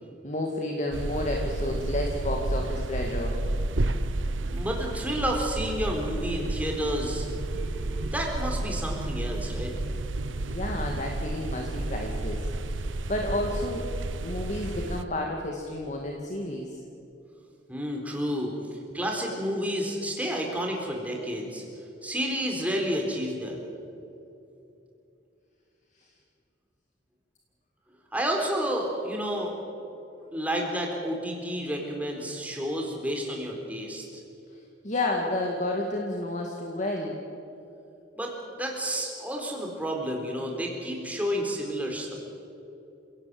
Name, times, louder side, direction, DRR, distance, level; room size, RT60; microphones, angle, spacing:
voice 1, 0.2-3.4 10.4-13.9 14.2-16.8 34.8-37.2, left 1 dB, 40° left, 1 dB, 2.1 m, -31 dB
sound 1, 0.9-15.0, right 2 dB, 85° right, 1.0 m, -31 dB
voice 2, 4.4-7.2 7.6-9.7 17.7-18.5 18.9-21.6 22.0-23.6 28.1-29.5 30.3-34.0 38.2-42.1, equal, 10° right, 0 dB, 4.1 m, -30 dB
29.0 x 17.5 x 7.8 m, 2.8 s
head